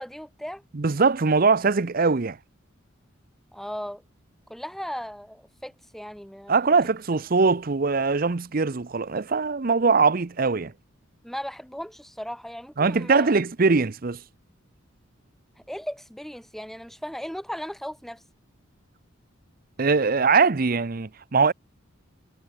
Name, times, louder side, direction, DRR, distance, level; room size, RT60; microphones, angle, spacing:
voice 1, 0.0-0.6 3.5-4.0 4.5-6.5 11.2-13.3 15.7-18.2, equal, ahead, 1.2 m, -36 dB
voice 2, 0.7-2.4 6.5-10.7 12.8-14.2 19.8-21.5, right 4 dB, 45° right, 0.7 m, -22 dB
head